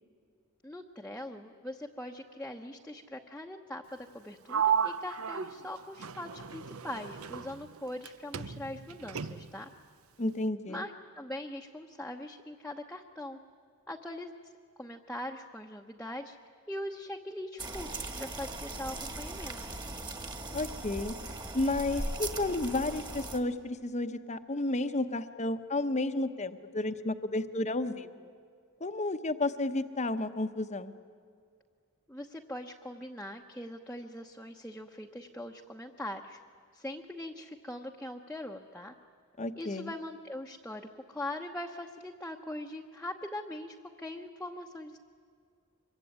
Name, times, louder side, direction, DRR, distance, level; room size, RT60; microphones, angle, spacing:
voice 1, 0.6-9.7 10.7-13.4 13.9-14.3 14.8-16.4 16.7-19.6 32.1-36.4 36.7-38.9 39.6-45.0, left 1 dB, 5° left, 0 dB, 1.0 m, -41 dB
Sliding door, 4.5-8.1 8.3-9.7, right 8 dB, 85° right, 0.8 m, -34 dB
voice 2, 10.2-10.8 20.5-21.2 21.5-28.1 28.8-30.9 39.4-39.9, left 2 dB, 35° left, 10 dB, 1.0 m, -32 dB
sound 1, 17.6-23.4, right 2 dB, 20° right, 1.9 m, -39 dB
25.5 x 23.0 x 9.6 m, 2.2 s
head